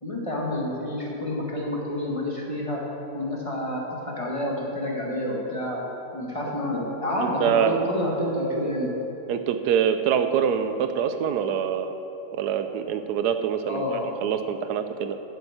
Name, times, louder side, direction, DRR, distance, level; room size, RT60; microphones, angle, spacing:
voice 1, 0.0-2.8 3.1-8.9 13.7-14.1, left 1 dB, 20° left, -3 dB, 1.4 m, -29 dB
voice 2, 7.2-7.8 9.3-11.9 12.3-13.8 14.2-15.2, right 8 dB, 70° right, 8 dB, 1.1 m, -25 dB
8.1 x 7.1 x 7.7 m, 3.0 s
omnidirectional pair, 1.9 m